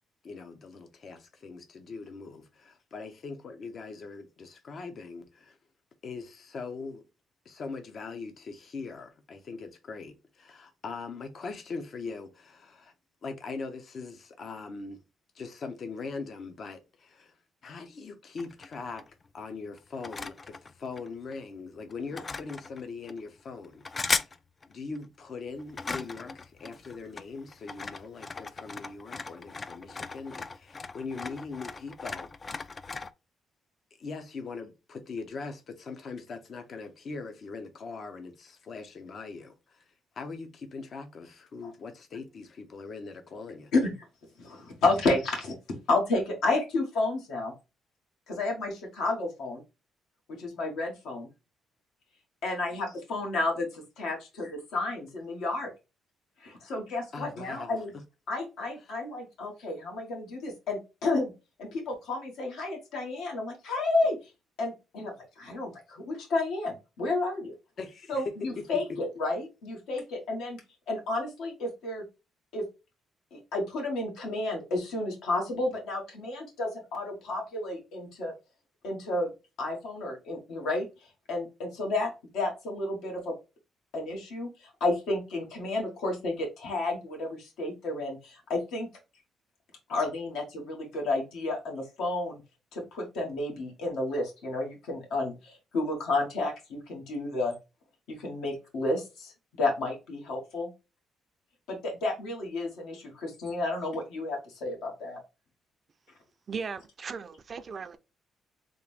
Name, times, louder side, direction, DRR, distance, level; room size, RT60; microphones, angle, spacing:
voice 1, 0.2-5.6 6.0-7.0 7.4-12.9 13.2-15.0 15.3-17.4 17.6-19.0 19.3-24.4 24.7-32.3 34.0-43.7 57.1-57.8 58.8-58.9 67.8-68.2 68.6-68.7, left 4 dB, 55° left, 0.7 m, -41 dB
sound 1, 18.4-19.3 19.8-21.4 21.9-23.2 23.6-24.4 24.6-25.0 25.5-33.1, left 4 dB, 35° left, 0.3 m, -37 dB
voice 2, 44.4-45.5 45.9-47.5 48.3-49.6 50.4-51.3 52.4-55.7 56.4-57.9 58.3-61.3 61.6-64.2 64.6-67.5 68.1-70.6 70.9-72.0 72.5-72.7 73.3-78.3 78.8-79.3 79.6-80.9 81.3-83.3 83.9-84.5 84.8-88.9 89.9-92.4 92.7-97.6 98.2-99.3 99.6-100.7 101.7-105.2, left 2 dB, 80° left, 1.6 m, -31 dB
voice 3, 106.5-108.0, right 5 dB, 45° right, 0.4 m, -37 dB
3.7 x 2.4 x 3.4 m
cardioid pair, 80°, 0 cm